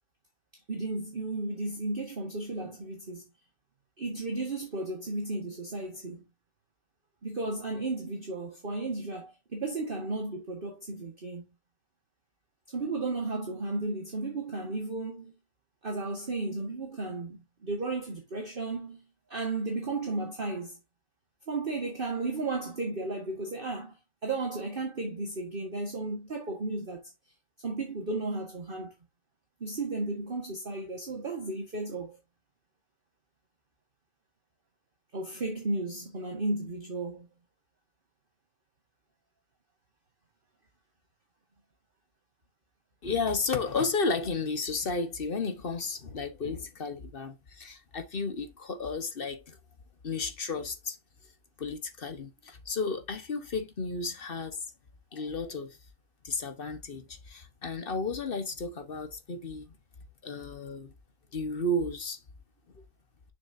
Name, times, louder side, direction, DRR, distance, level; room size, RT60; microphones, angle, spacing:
voice 1, 0.7-3.2 4.0-6.2 7.2-11.4 12.7-15.3 15.8-20.8 21.5-27.0 27.6-28.9 29.6-32.2 35.1-37.3, right 2 dB, 30° right, 1.6 m, -34 dB
voice 2, 43.0-49.6 50.0-51.0 51.2-51.3 51.6-54.7 55.1-55.8 56.2-59.7 60.2-60.9 61.3-62.2 62.7-62.8, left 3 dB, 35° left, 1.1 m, -33 dB
6.9 x 6.7 x 2.7 m
omnidirectional pair, 2.0 m